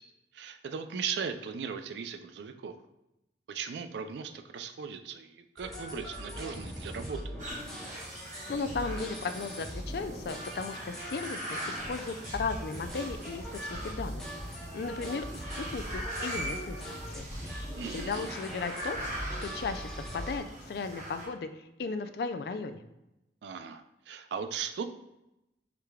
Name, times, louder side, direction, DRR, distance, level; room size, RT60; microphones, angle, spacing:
voice 1, 0.3-2.7 3.5-7.4 17.8-18.3 23.4-24.8, right 6 dB, 80° right, 8 dB, 0.3 m, -38 dB
sound 1, 5.6-20.4, equal, 5° left, 0.7 m, -41 dB
sound 2, 7.4-21.3, right 1 dB, 40° right, 1.3 m, -42 dB
voice 2, 8.5-14.2 14.7-17.6 17.9-19.0 19.4-22.8, left 4 dB, 60° left, 9 dB, 0.3 m, -36 dB
4.9 x 3.3 x 2.3 m, 0.90 s
head